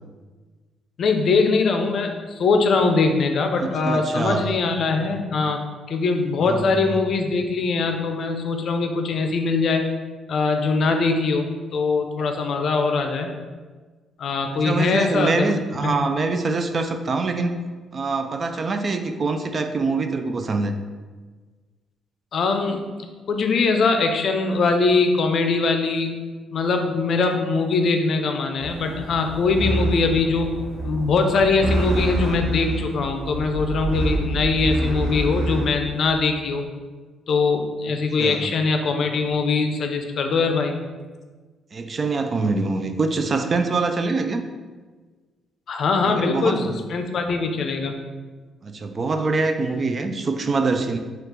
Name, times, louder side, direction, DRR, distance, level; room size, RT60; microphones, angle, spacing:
voice 1, 1.0-5.6 5.9-9.8 10.3-13.3 14.2-15.5 15.8-16.0 22.3-22.8 23.3-26.2 26.5-30.5 30.8-36.6 37.3-40.8 45.7-48.0, left 4 dB, 60° left, 5 dB, 0.5 m, -22 dB
voice 2, 3.6-4.5 6.4-7.0 14.6-17.6 17.9-20.7 38.2-38.5 41.7-44.5 46.0-46.8 48.6-51.0, right 3 dB, 40° right, 7 dB, 0.4 m, -24 dB
sound 1, 28.6-36.1, right 1 dB, 80° right, 1.0 m, -27 dB
5.5 x 2.4 x 3.7 m, 1.4 s
cardioid pair, 90°, 0 cm